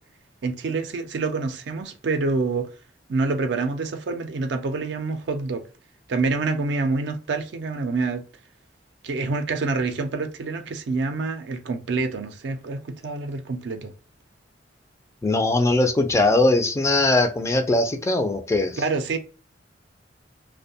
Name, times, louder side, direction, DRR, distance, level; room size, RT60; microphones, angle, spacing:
voice 1, 0.4-2.7 3.1-5.6 6.1-8.2 9.0-13.9 18.8-19.2, right 3 dB, 70° right, 0.4 m, -27 dB
voice 2, 15.2-18.8, left 2 dB, 15° left, 0.3 m, -20 dB
2.6 x 2.1 x 2.6 m
head